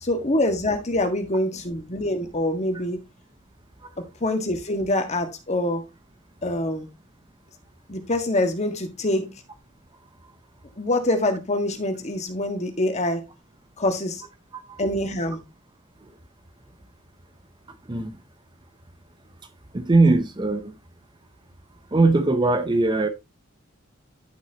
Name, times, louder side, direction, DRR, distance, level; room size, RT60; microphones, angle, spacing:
voice 1, 0.0-3.0 4.0-5.8 6.4-6.9 7.9-9.4 10.8-13.2 13.8-14.2 14.8-15.4, left 1 dB, 35° left, 1.7 m, -25 dB
voice 2, 19.7-20.7 21.9-23.1, right 3 dB, 20° right, 0.7 m, -20 dB
11.5 x 6.2 x 2.9 m
head